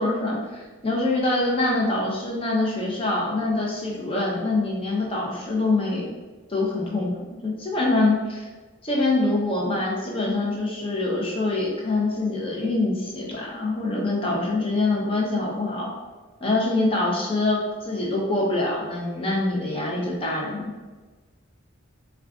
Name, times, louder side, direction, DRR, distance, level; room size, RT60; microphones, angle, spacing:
voice 1, 0.0-6.0 6.5-8.5 8.8-15.9 16.4-20.7, left 2 dB, 25° left, -3 dB, 0.6 m, -25 dB
2.4 x 2.3 x 3.4 m, 1.3 s
head